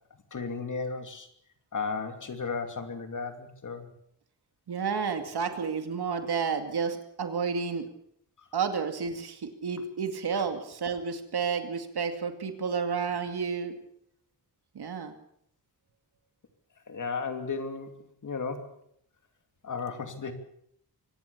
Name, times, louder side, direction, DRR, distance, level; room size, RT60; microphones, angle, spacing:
voice 1, 0.3-1.3 1.7-3.9 8.4-8.5 16.9-18.7 19.6-20.3, left 4 dB, 50° left, 7 dB, 2.8 m, -34 dB
voice 2, 4.7-7.9 8.5-13.7 14.8-15.1, right 6 dB, 75° right, 7 dB, 2.4 m, -31 dB
24.5 x 19.0 x 7.2 m, 0.70 s
wide cardioid pair, 175°, 39 cm